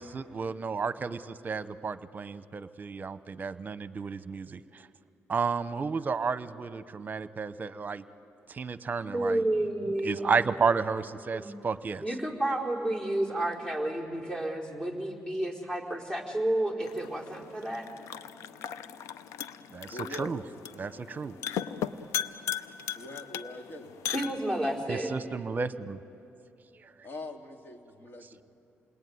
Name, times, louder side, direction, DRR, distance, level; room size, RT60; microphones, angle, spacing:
voice 1, 0.0-4.9 5.3-8.0 8.5-9.4 10.0-12.0 19.7-20.4 20.7-21.4 24.9-26.0 26.8-26.9, right 5 dB, 35° right, 14 dB, 1.0 m, -32 dB
voice 2, 9.1-10.3 11.3-11.5 12.0-17.9 24.1-25.1, right 1 dB, 20° left, -1 dB, 4.3 m, -31 dB
sound 1, 16.8-24.8, left 9 dB, 90° left, 0.7 m, -38 dB
voice 3, 19.9-20.3 23.0-23.9 27.0-28.4, left 1 dB, 50° left, 4 dB, 2.8 m, -43 dB
28.5 x 20.5 x 9.5 m, 2.7 s
cardioid pair, 85°, 5 cm